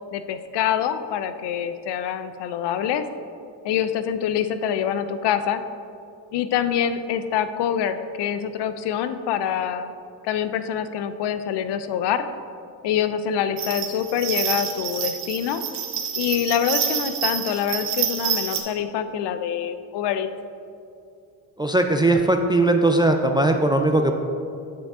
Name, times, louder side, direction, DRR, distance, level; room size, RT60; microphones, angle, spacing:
voice 1, 0.1-3.0 3.6-5.6 6.3-9.9 10.2-12.3 12.8-15.6 16.2-20.3, left 9 dB, 65° left, 11 dB, 0.6 m, -25 dB
sound 1, 13.6-18.6, right 8 dB, 60° right, 1.0 m, -27 dB
voice 2, 21.6-24.1, right 2 dB, 10° right, 4 dB, 0.3 m, -19 dB
7.2 x 5.7 x 3.6 m, 2.5 s
supercardioid pair, 60°, 46 cm